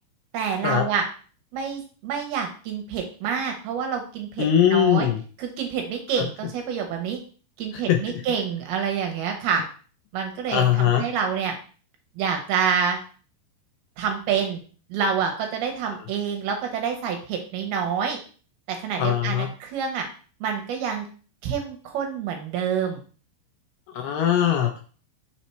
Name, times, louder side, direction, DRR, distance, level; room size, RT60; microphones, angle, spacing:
voice 1, 0.3-1.0 1.5-5.1 5.4-7.2 7.6-9.6 10.1-11.5 12.2-13.0 14.0-14.6 14.9-18.2 18.7-20.1 20.4-21.1 21.4-23.0, right 7 dB, 75° right, 3 dB, 2.5 m, -27 dB
voice 2, 4.4-5.2 7.9-8.0 10.5-11.0 19.0-19.5 24.0-24.8, left 10 dB, 80° left, 4 dB, 2.3 m, -20 dB
6.0 x 4.2 x 4.3 m, 0.40 s
omnidirectional pair, 5.0 m